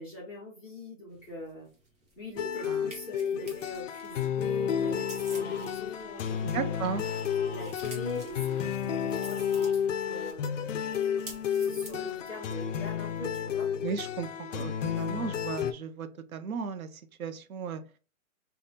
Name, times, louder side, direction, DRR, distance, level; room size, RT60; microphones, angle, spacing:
voice 1, 0.0-1.7 2.1-6.8 7.5-10.6 11.5-13.7, left 1 dB, 5° left, -13 dB, 0.6 m, -42 dB
sound 1, 1.1-13.6, right 2 dB, 30° right, 1.0 m, -52 dB
sound 2, 2.4-15.7, left 8 dB, 65° left, 0.5 m, -31 dB
sound 3, 4.1-10.3, left 3 dB, 40° left, 0.9 m, -49 dB
voice 2, 6.4-7.0 13.8-17.8, right 6 dB, 80° right, 10 dB, 0.7 m, -35 dB
3.4 x 2.3 x 4.0 m, 0.35 s
hypercardioid pair, 175°, 41 cm